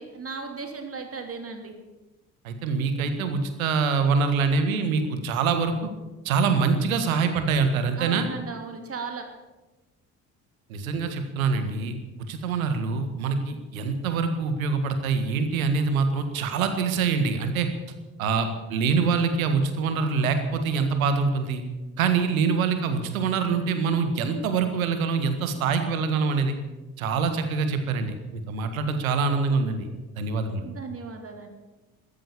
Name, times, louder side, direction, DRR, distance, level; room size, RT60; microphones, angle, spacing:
voice 1, 0.0-1.7 8.0-9.3 30.6-31.5, right 4 dB, 30° right, 4 dB, 3.1 m, -36 dB
voice 2, 2.4-5.9 6.2-8.3 10.7-11.9 12.3-17.7 18.2-21.6 22.0-26.6 27.0-29.9 30.2-30.7, right 5 dB, 70° right, 8 dB, 1.8 m, -25 dB
14.0 x 13.5 x 7.2 m, 1.1 s
figure-of-eight pair, 55°, 42 cm